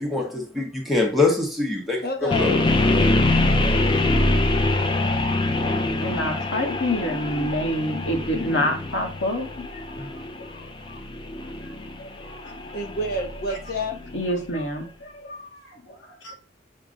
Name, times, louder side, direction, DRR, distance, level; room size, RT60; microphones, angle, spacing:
voice 1, 0.1-2.6, left 3 dB, ahead, 0.8 m, -24 dB
voice 2, 2.0-2.7 12.7-13.9, left 1 dB, 55° left, 0.8 m, -29 dB
sound 1, 2.3-14.3, left 2 dB, 25° left, 0.4 m, -24 dB
voice 3, 5.8-10.1 10.4-11.0 11.6-12.6 13.5-13.6 14.0-16.3, left 1 dB, 85° left, 1.2 m, -28 dB
5.8 x 2.2 x 3.6 m
head